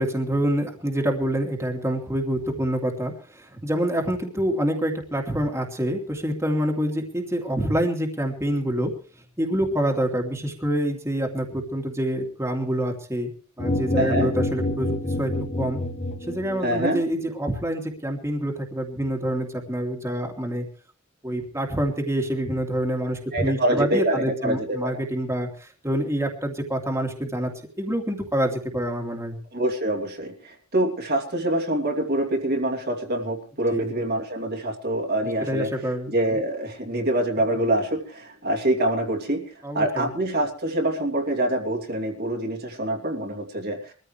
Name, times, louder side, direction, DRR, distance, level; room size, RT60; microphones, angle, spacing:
voice 1, 0.0-8.9 9.4-13.3 13.6-15.3 15.6-15.8 16.2-20.7 21.2-27.5 27.8-29.4 33.7-33.9 35.2-36.4 39.6-40.1, right 1 dB, 10° right, 1 dB, 2.7 m, -26 dB
sound 1, 13.6-16.8, left 1 dB, 30° left, 1.4 m, -27 dB
voice 2, 14.0-14.3 16.6-17.0 23.3-25.0 29.5-35.7 36.1-43.9, right 1 dB, 45° right, 2 dB, 2.7 m, -25 dB
23.0 x 14.5 x 3.3 m, 0.38 s
head